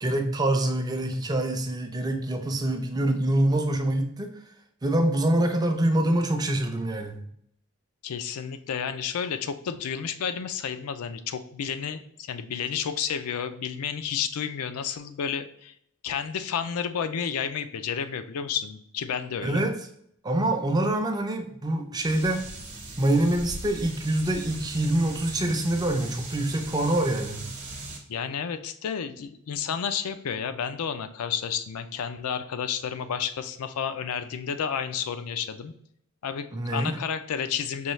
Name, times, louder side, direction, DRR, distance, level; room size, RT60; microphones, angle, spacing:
voice 1, 0.0-4.3 4.8-7.2 19.4-19.7 20.2-22.4 23.0-27.4 36.5-37.0, right 1 dB, 20° right, 4 dB, 0.5 m, -25 dB
voice 2, 8.0-15.7 16.0-19.7 28.1-35.7 36.2-37.9, left 7 dB, 80° left, 10 dB, 0.4 m, -31 dB
sound 1, 22.0-28.0, right 2 dB, 35° right, 0.9 m, -39 dB
5.4 x 2.3 x 3.1 m, 0.70 s
head